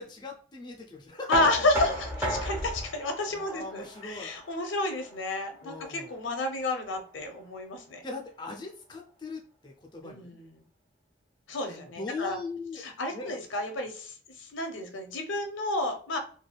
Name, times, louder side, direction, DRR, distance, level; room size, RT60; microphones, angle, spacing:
voice 1, 0.0-1.3 3.3-4.3 5.6-6.1 8.0-10.4 11.6-12.8 13.1-13.4, left 3 dB, 20° left, 1 dB, 0.4 m, -40 dB
voice 2, 1.3-8.0 10.0-10.5 11.5-12.4 12.8-16.2, left 2 dB, 85° left, 5 dB, 0.6 m, -31 dB
Knock, 1.3-7.1, equal, 10° right, 0.7 m, -36 dB
3.3 x 2.2 x 2.2 m, 0.43 s
head